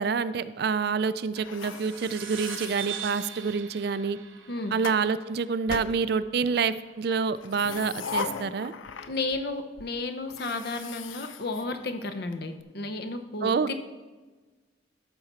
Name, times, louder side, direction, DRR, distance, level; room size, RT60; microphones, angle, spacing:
voice 1, 0.0-4.2 4.7-8.7 13.4-13.7, right 5 dB, 55° right, 14 dB, 0.4 m, -27 dB
sound 1, 1.4-3.6 4.4-5.0 5.7-6.6 7.3-9.5 9.8-9.9 10.3-12.3, left 5 dB, 90° left, 0.5 m, -39 dB
sound 2, 1.6-6.5, right 9 dB, 90° right, 1.0 m, -41 dB
voice 2, 9.1-13.7, left 2 dB, 55° left, 8 dB, 0.8 m, -33 dB
13.5 x 6.0 x 4.3 m, 1.3 s
head